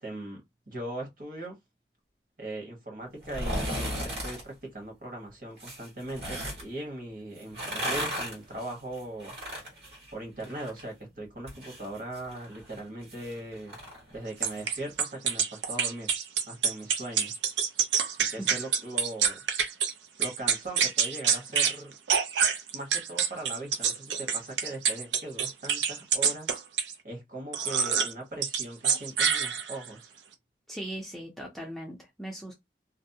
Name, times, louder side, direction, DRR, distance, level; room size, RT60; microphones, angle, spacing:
voice 1, 0.0-0.4 0.7-1.6 2.4-9.4 10.1-13.8 14.1-16.1 16.5-17.3 17.6-17.8 18.1-19.4 20.2-21.9 22.7-26.6 27.0-30.1, right 1 dB, 50° right, 1.1 m, -39 dB
sound 1, 3.2-4.4 5.6-6.6 7.4-10.8 11.1-14.6 14.9-15.0, equal, 65° right, 1.4 m, -36 dB
sound 2, 14.4-19.9 20.2-21.8 22.1-26.9 27.5-28.1 28.4-29.9, right 7 dB, 90° right, 0.4 m, -26 dB
voice 2, 30.7-32.5, right 1 dB, ahead, 0.4 m, -39 dB
2.6 x 2.0 x 2.6 m
head